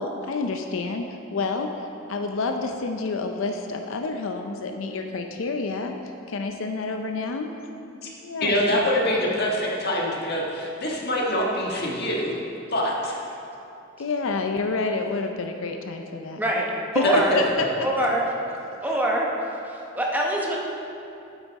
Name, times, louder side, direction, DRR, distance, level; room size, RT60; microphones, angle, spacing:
voice 1, 0.0-5.9 6.3-7.5 8.2-8.8 14.0-16.4 16.9-17.0 17.4-17.7, left 3 dB, 80° left, 4 dB, 0.5 m, -29 dB
voice 2, 8.4-12.3 12.7-13.2 17.0-17.4, equal, 55° left, -2 dB, 1.5 m, -24 dB
voice 3, 16.4-17.4 17.8-18.3 18.8-19.3 19.6-20.6, right 1 dB, 10° right, -2 dB, 0.9 m, -24 dB
8.9 x 8.2 x 4.1 m, 2.7 s
head